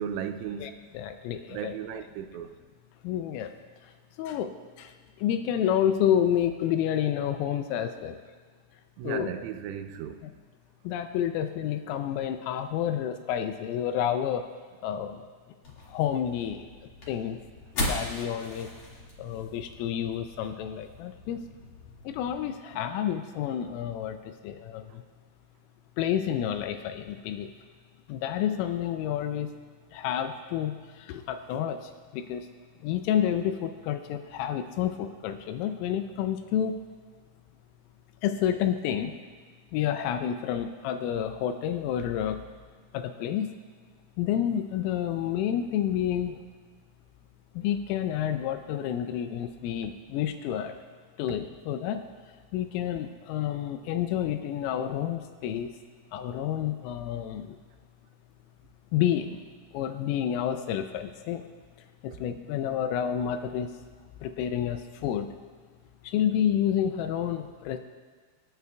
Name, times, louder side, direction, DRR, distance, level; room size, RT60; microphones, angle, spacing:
voice 1, 0.0-0.7 1.5-2.5 9.0-10.2, right 8 dB, 85° right, 7 dB, 3.3 m, -35 dB
voice 2, 0.6-1.8 3.0-3.5 3.8-3.9 4.2-8.2 9.0-9.3 10.2-10.3 10.8-14.5 14.8-15.2 15.9-16.7 17.1-17.4 17.8-18.7 19.2-21.5 22.0-25.0 26.0-27.5 28.1-29.5 29.9-32.5 32.8-36.8 38.2-39.2 39.7-42.4 42.9-43.5 44.2-46.4 47.6-50.8 51.2-52.1 52.5-55.7 56.1-57.6 58.9-59.4 59.7-61.4 62.0-63.7 64.2-65.3 66.0-67.8, left 10 dB, 85° left, 8 dB, 3.2 m, -29 dB
sound 1, 15.6-22.4, left 1 dB, 65° left, 1.2 m, -38 dB
26.5 x 9.3 x 2.3 m, 1.5 s
omnidirectional pair, 5.9 m